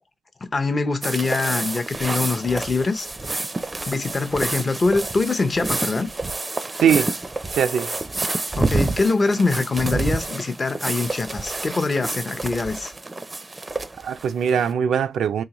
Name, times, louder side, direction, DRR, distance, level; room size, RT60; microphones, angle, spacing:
voice 1, 0.4-3.1 3.9-6.1 8.6-12.9, left 3 dB, 35° left, 0.6 m, -23 dB
sound 1, 1.0-14.7, right 2 dB, 20° right, 0.4 m, -28 dB
voice 2, 6.8-7.1 7.6-7.9 14.0-15.4, right 8 dB, 85° right, 0.3 m, -21 dB
3.8 x 2.8 x 3.0 m
cardioid pair, 90°, 0 cm